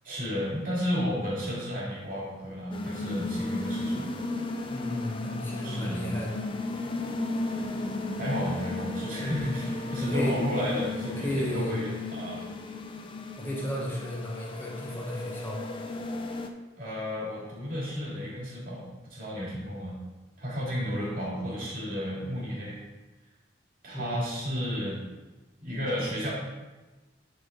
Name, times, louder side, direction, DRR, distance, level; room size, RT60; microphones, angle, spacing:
voice 1, 0.0-4.1 5.6-6.1 8.2-12.4 16.8-19.9 20.4-22.8 23.8-25.0 25.6-26.3, equal, 45° right, -5 dB, 2.5 m, -33 dB
sound 1, 2.7-16.5, left 2 dB, 25° left, 0.5 m, -34 dB
voice 2, 4.7-6.4 9.2-9.5 10.0-10.4 11.0-11.8 13.4-15.8 23.9-24.3, left 1 dB, 10° left, -4 dB, 1.4 m, -33 dB
10.0 x 3.9 x 4.0 m, 1.2 s
head